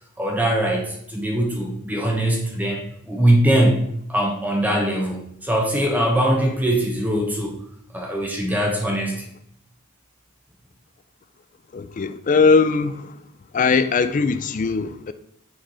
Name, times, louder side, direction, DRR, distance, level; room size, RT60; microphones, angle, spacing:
voice 1, 0.2-3.8 4.1-7.5 7.9-9.3, right 1 dB, 5° right, 0.8 m, -21 dB
voice 2, 11.7-13.2 13.5-15.1, left 4 dB, 35° left, 0.3 m, -20 dB
6.2 x 4.5 x 4.8 m
head